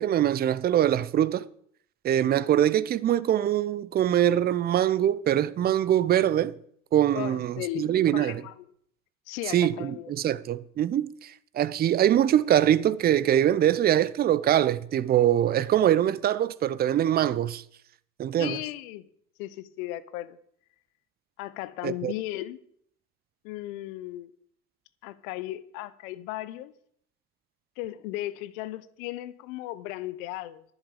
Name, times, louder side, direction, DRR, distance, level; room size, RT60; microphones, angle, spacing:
voice 1, 0.0-1.5 2.0-6.5 6.9-8.4 9.5-17.6 18.2-18.6 21.8-22.1, right 11 dB, 20° right, 0.5 m, -23 dB
voice 2, 7.1-8.5 9.3-10.1 18.4-19.1 19.4-20.4 21.4-22.6 23.4-24.3 25.0-26.7 27.8-30.6, left 15 dB, 60° left, 1.0 m, -36 dB
10.5 x 10.5 x 5.0 m
hypercardioid pair, 75°, 47 cm